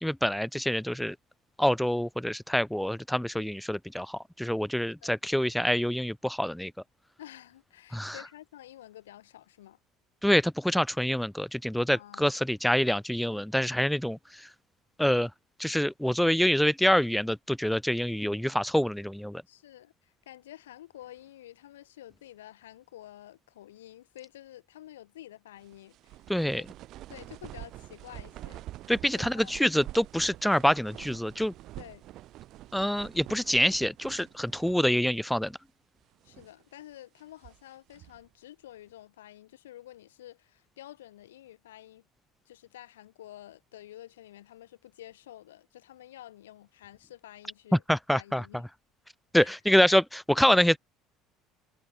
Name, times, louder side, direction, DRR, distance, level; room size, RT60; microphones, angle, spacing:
voice 1, 0.0-1.2 1.6-6.7 7.9-8.2 10.2-14.5 15.0-15.3 15.6-19.4 26.3-26.6 28.9-31.5 32.7-35.5 47.9-48.4 49.3-50.8, equal, ahead, 0.3 m, -26 dB
voice 2, 7.2-9.8 11.9-12.3 19.5-26.6 27.1-28.6 29.1-29.5 31.8-32.0 36.2-42.0 42.4-47.8 48.1-48.6 49.4-49.5, left 13 dB, 75° left, 6.4 m, -49 dB
sound 1, 25.6-35.1 35.4-35.5 36.1-36.6 37.2-38.3, right 15 dB, 50° right, 3.7 m, -47 dB
figure-of-eight pair, 60°, 0 cm